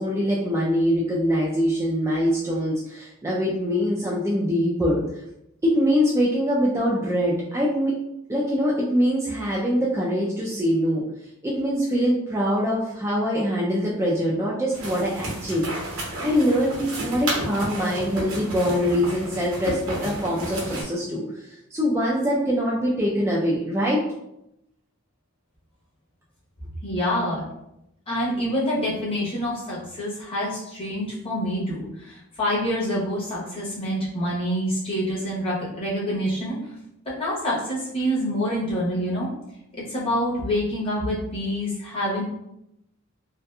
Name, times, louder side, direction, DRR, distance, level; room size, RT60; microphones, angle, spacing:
voice 1, 0.0-5.0 5.6-7.9 8.3-11.0 11.4-15.7 16.2-21.2 21.7-24.0, equal, 15° right, -6 dB, 0.3 m, -23 dB
sound 1, 14.7-20.8, right 1 dB, 75° right, 0.9 m, -32 dB
voice 2, 26.8-27.4 28.1-36.7 37.2-39.3 39.7-42.2, equal, 25° left, -7 dB, 0.9 m, -26 dB
2.7 x 2.4 x 2.2 m, 0.83 s
head